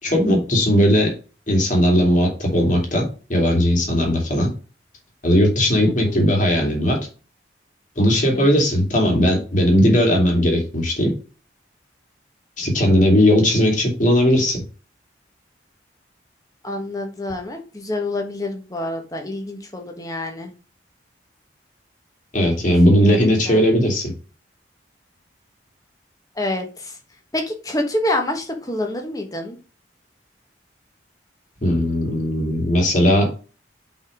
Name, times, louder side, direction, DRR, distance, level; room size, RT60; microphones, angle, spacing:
voice 1, 0.0-1.1 1.5-4.5 5.2-7.0 8.0-11.1 12.6-14.6 22.3-24.0 31.6-33.3, equal, 40° left, 0 dB, 2.6 m, -17 dB
voice 2, 5.9-6.2 8.3-8.5 16.6-20.5 22.9-23.6 26.4-27.0 27.3-29.6, left 1 dB, 20° left, 4 dB, 1.3 m, -27 dB
5.5 x 5.1 x 5.0 m, 0.36 s
head